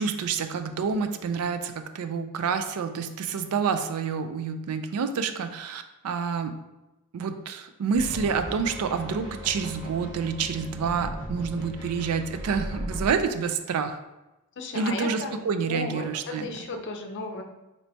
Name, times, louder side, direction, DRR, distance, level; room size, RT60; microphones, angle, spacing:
voice 1, 0.0-6.6 7.1-14.0 14.7-16.5, right 6 dB, 75° right, 8 dB, 0.4 m, -28 dB
sound 1, 7.9-13.1, equal, 20° right, 1.2 m, -37 dB
voice 2, 14.6-15.4 15.7-17.4, left 3 dB, 55° left, 4 dB, 0.5 m, -34 dB
4.4 x 3.1 x 2.7 m, 1.0 s
head